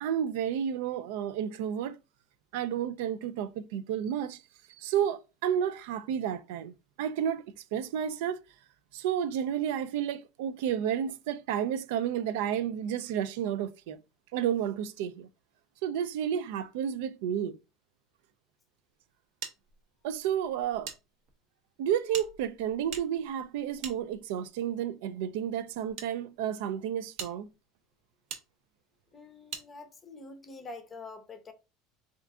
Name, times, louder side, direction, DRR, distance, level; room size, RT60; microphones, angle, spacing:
voice 1, 0.0-2.0 2.5-4.4 4.7-7.4 7.7-8.4 8.9-14.0 14.3-15.3 15.8-17.5 20.0-20.9 21.8-27.5, right 9 dB, 75° right, 0.3 m, -31 dB
sound 1, 19.4-21.0 21.3-21.4 22.1-24.6 25.4-26.1 26.7-26.8 27.2-27.3 28.3-28.4 29.5-29.7, right 7 dB, 50° right, 0.7 m, -43 dB
voice 2, 29.1-31.5, left 3 dB, 15° left, 0.6 m, -46 dB
3.6 x 2.4 x 3.5 m
cardioid pair, 165°, 0 cm